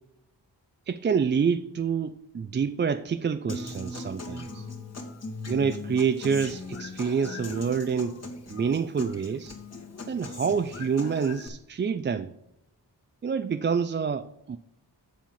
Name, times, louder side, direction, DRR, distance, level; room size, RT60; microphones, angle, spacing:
voice 1, 0.9-4.7 5.5-8.2 8.5-9.6 10.1-12.3 13.2-14.6, right 6 dB, 30° right, 0.3 m, -27 dB
Human voice / Acoustic guitar, 3.5-11.5, left 2 dB, 35° left, 2.0 m, -39 dB
7.4 x 5.6 x 7.2 m
cardioid pair, 65°, 43 cm